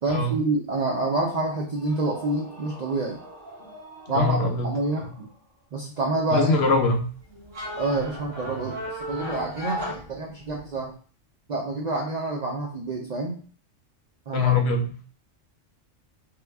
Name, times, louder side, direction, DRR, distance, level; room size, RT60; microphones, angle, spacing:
voice 1, 0.0-3.2 4.1-4.4 4.6-5.3 5.7-6.6 7.8-10.9 11.5-13.4 14.3-14.5, right 2 dB, 90° right, 0 dB, 0.3 m, -27 dB
sound 1, 1.7-5.6, equal, 40° right, 1.6 m, -46 dB
voice 2, 4.1-4.7 5.0-5.1 6.3-7.0 14.3-14.9, left 3 dB, 65° left, 4 dB, 0.8 m, -23 dB
sound 2, 6.5-10.8, equal, 60° right, 1.1 m, -35 dB
3.1 x 2.1 x 3.3 m, 0.43 s
omnidirectional pair, 1.3 m